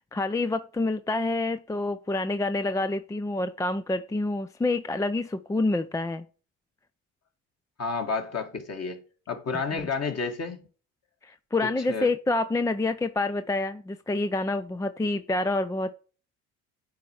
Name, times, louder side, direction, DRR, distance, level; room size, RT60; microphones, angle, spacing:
voice 1, 0.1-6.2 9.7-9.9 11.2-15.9, left 2 dB, 10° left, 0.4 m, -27 dB
voice 2, 7.8-9.0 9.3-10.6 11.9-12.1, left 4 dB, 35° left, 2.0 m, -30 dB
9.3 x 4.4 x 4.7 m
hypercardioid pair, 60°, 42 cm